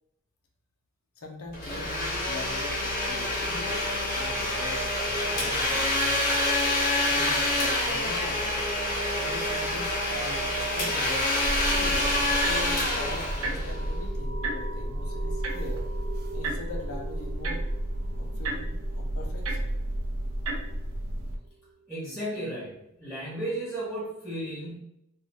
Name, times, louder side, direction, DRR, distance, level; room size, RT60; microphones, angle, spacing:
voice 1, 1.2-6.4 7.1-8.7 9.2-11.3 11.7-15.9 16.3-17.6 18.1-19.7, left 2 dB, 75° left, 1 dB, 0.6 m, -42 dB
Domestic sounds home sounds, 1.5-14.1, left 1 dB, 40° left, 0.9 m, -27 dB
sound 1, 8.1-22.2, right 2 dB, 15° right, 0.9 m, -44 dB
sound 2, 11.4-21.3, right 1 dB, 70° right, 0.5 m, -32 dB
voice 2, 21.9-24.8, right 1 dB, ahead, -9 dB, 1.4 m, -34 dB
2.6 x 2.3 x 3.2 m, 0.83 s
head